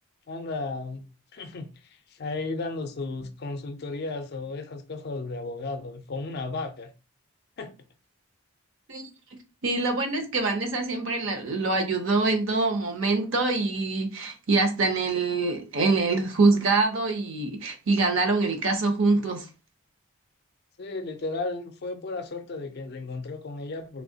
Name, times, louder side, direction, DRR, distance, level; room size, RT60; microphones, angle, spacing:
voice 1, 0.3-1.0 1.3-1.7 2.1-6.9 7.6-7.7 20.8-24.0, left 3 dB, 45° left, 0.4 m, -34 dB
voice 2, 9.6-19.5, right 3 dB, 60° right, 0.7 m, -24 dB
3.3 x 2.7 x 2.7 m
head